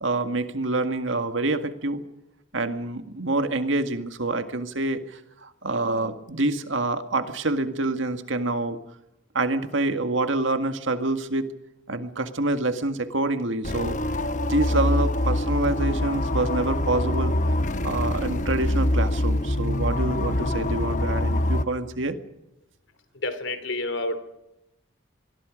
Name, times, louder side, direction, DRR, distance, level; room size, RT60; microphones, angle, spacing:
voice 1, 0.0-2.0 2.5-8.8 9.3-11.5 11.9-14.0 14.5-17.3 17.8-22.2, right 2 dB, 85° right, 8 dB, 2.0 m, -26 dB
sound 1, 13.6-21.6, left 1 dB, 40° left, 1.1 m, -25 dB
voice 2, 23.1-24.2, left 2 dB, 80° left, 11 dB, 3.0 m, -29 dB
26.5 x 21.0 x 5.2 m, 0.87 s
head